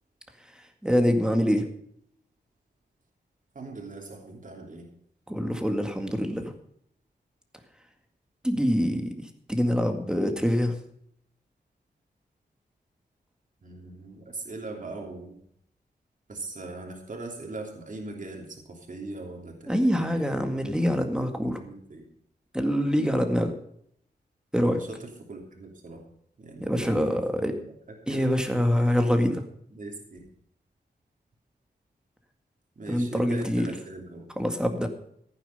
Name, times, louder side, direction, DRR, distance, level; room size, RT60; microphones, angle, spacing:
voice 1, 0.8-1.6 5.3-6.4 8.4-9.1 9.5-10.8 19.7-21.6 22.5-23.5 24.5-24.8 26.6-27.5 28.1-29.4 32.9-33.7 34.4-34.9, equal, 5° right, 5 dB, 2.0 m, -25 dB
voice 2, 3.5-4.9 13.6-15.4 16.3-20.5 21.3-22.0 24.6-26.0 26.4-27.6 28.1-28.4 29.7-30.2 32.8-34.2, right 2 dB, 50° right, 1 dB, 3.1 m, -40 dB
15.5 x 9.3 x 5.5 m, 0.68 s
wide cardioid pair, 125°, 17 cm